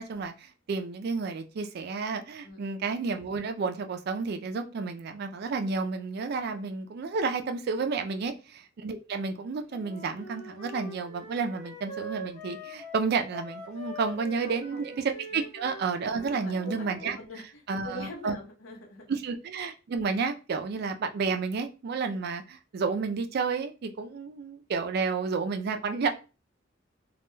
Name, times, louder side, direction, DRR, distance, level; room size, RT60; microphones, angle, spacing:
voice 1, 0.0-17.2 17.7-18.4 19.1-26.1, right 4 dB, 55° right, 7 dB, 0.3 m, -31 dB
Wind instrument woodwind instrument, 9.7-17.1, equal, 35° left, 0.7 m, -43 dB
voice 2, 14.4-14.8 15.3-15.4 16.2-19.1, equal, 85° left, 0 dB, 0.8 m, -43 dB
2.2 x 2.1 x 3.0 m, 0.32 s
head